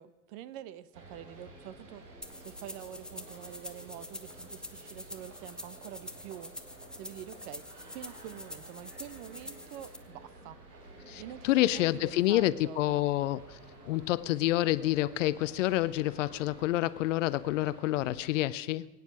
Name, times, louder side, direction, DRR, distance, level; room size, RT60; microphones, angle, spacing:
voice 1, 0.0-6.5 7.0-10.6 11.2-13.1, right 12 dB, 40° right, 16 dB, 0.9 m, -46 dB
sound 1, 0.9-18.3, right 2 dB, 75° right, 3.7 m, -52 dB
sound 2, 2.2-10.0, left 1 dB, ahead, 0.9 m, -46 dB
voice 2, 11.1-13.6 13.8-18.9, left 16 dB, 50° left, 17 dB, 0.6 m, -28 dB
22.0 x 9.4 x 6.2 m, 1.2 s
figure-of-eight pair, 95°, 49 cm